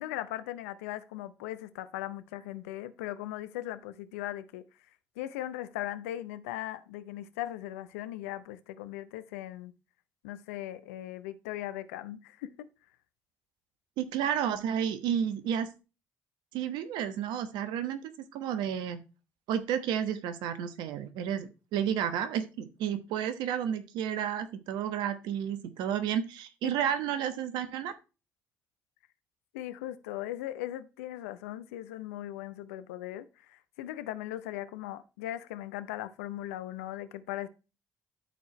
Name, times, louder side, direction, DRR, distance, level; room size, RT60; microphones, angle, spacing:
voice 1, 0.0-4.6 5.2-9.7 10.2-12.7 26.6-26.7 29.5-37.5, left 14 dB, 90° left, 0.6 m, -39 dB
voice 2, 14.0-15.7 16.5-19.0 19.5-27.9, right 9 dB, 75° right, 1.1 m, -31 dB
13.0 x 4.5 x 3.1 m
hypercardioid pair, 50°, 8 cm